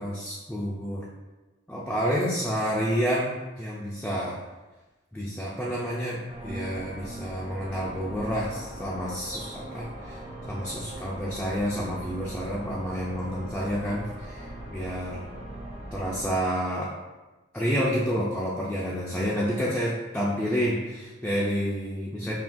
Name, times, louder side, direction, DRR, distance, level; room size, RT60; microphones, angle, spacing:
voice 1, 0.0-1.1 1.7-4.4 5.1-10.2 10.5-15.2 15.9-16.9 17.5-22.3, equal, 5° left, -6 dB, 0.4 m, -29 dB
sound 1, 6.3-16.3, right 1 dB, 30° right, 0.7 m, -40 dB
5.7 x 2.2 x 2.5 m, 1.2 s
head